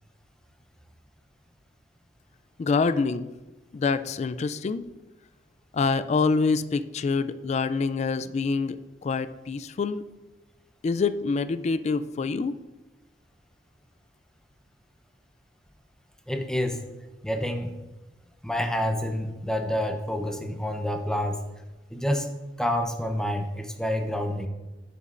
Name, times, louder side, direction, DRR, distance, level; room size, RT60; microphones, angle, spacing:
voice 1, 2.6-3.3 3.7-4.8 5.7-8.8 9.0-10.0 10.8-12.5, left 4 dB, 40° left, 13 dB, 0.3 m, -26 dB
voice 2, 16.3-16.8 17.2-17.7 18.4-21.4 21.9-22.3 22.6-24.5, equal, 5° left, 4 dB, 0.7 m, -28 dB
10.5 x 6.8 x 2.5 m, 1.1 s
head